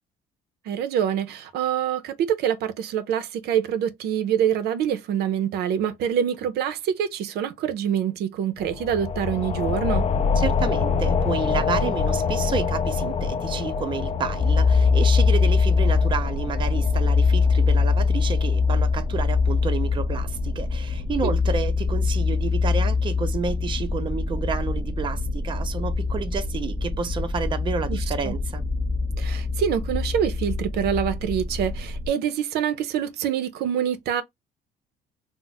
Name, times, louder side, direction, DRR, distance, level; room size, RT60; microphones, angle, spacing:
voice 1, 0.7-10.1 21.2-21.3 27.9-28.4 29.2-34.2, right 9 dB, 70° right, 0.5 m, -25 dB
sound 1, 8.6-19.8, left 5 dB, 40° left, 0.4 m, -27 dB
voice 2, 10.4-28.6, right 6 dB, 30° right, 0.5 m, -30 dB
sound 2, 14.4-32.1, left 4 dB, 20° left, 0.8 m, -23 dB
2.4 x 2.0 x 3.9 m
cardioid pair, 110°, 17 cm